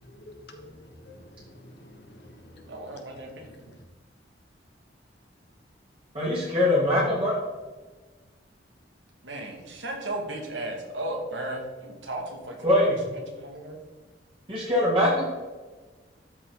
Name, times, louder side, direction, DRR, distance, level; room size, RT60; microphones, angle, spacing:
voice 1, 0.0-2.8 3.5-3.8, left 1 dB, 60° left, 4 dB, 1.4 m, -49 dB
voice 2, 2.7-3.5 9.2-13.8, right 1 dB, 80° right, 1 dB, 2.0 m, -35 dB
voice 3, 6.1-7.4 12.6-12.9 14.5-15.3, left 1 dB, 30° right, -7 dB, 3.0 m, -22 dB
12.5 x 5.4 x 3.9 m, 1.3 s
head